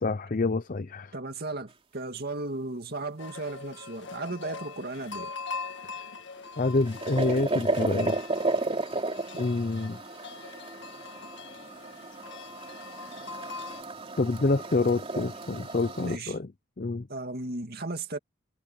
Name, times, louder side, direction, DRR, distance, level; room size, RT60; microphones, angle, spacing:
voice 1, 0.0-1.1 6.6-8.2 9.4-10.0 14.2-16.5 16.8-17.1, left 3 dB, 40° left, 0.6 m, -27 dB
voice 2, 1.1-5.4 16.0-16.3 17.1-18.2, right 2 dB, 50° right, 2.3 m, -35 dB
sound 1, 3.2-13.8, left 4 dB, 60° left, 2.0 m, -42 dB
sound 2, 6.4-16.2, right 2 dB, 30° right, 3.1 m, -33 dB
head